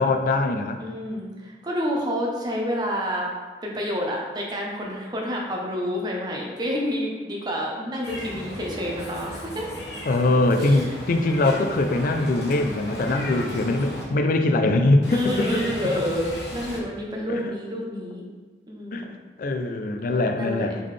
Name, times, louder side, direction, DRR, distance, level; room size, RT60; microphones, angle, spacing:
voice 1, 0.0-0.8 10.1-15.6 15.9-16.0 17.3-17.5 18.9-20.8, left 2 dB, 50° left, 6 dB, 0.3 m, -22 dB
voice 2, 0.8-3.3 3.6-9.8 10.6-10.9 15.1-18.2 18.7-19.1 20.3-20.7, equal, 25° right, -2 dB, 0.7 m, -29 dB
Meow, 8.0-14.0 15.0-16.8, left 1 dB, 70° left, 1.1 m, -36 dB
3.7 x 3.6 x 3.2 m, 1.4 s
head